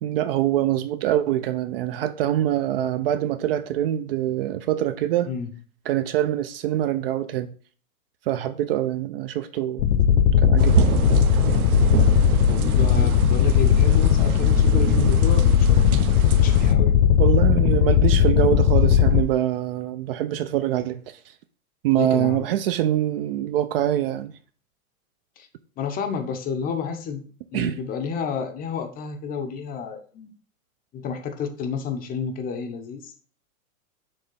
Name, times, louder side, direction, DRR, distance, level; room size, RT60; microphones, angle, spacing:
voice 1, 0.0-5.3 5.9-7.5 8.3-9.8 10.1-10.8 17.2-21.3 21.8-24.3 27.5-27.8, right 12 dB, 45° right, 0.4 m, -24 dB
sound 1, 9.8-19.2, left 9 dB, 50° left, 0.8 m, -18 dB
sound 2, 10.6-16.7, right 6 dB, 75° right, 0.9 m, -27 dB
voice 2, 12.5-15.9 16.4-17.0 22.0-22.4 25.4-25.5 25.8-27.2 27.5-30.3 30.9-33.1, left 6 dB, 20° left, 0.6 m, -31 dB
6.6 x 3.3 x 5.4 m
hypercardioid pair, 130°, 44 cm